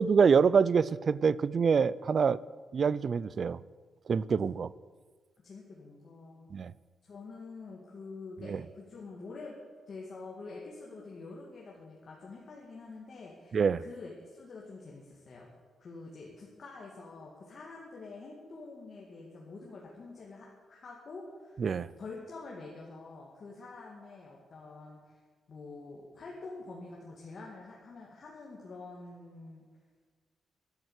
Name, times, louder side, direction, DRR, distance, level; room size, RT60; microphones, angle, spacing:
voice 1, 0.0-2.4 2.7-3.6 4.1-4.7 6.5-6.7 8.4-8.6 13.5-13.8 21.6-21.9, right 6 dB, 35° right, 20 dB, 0.4 m, -25 dB
voice 2, 5.4-6.5 7.0-9.6 9.9-15.5 15.8-21.6 22.0-25.2 25.5-29.7, left 3 dB, 40° left, -3 dB, 2.3 m, -47 dB
12.5 x 12.0 x 8.2 m, 1.5 s
wide cardioid pair, 175°, 0 cm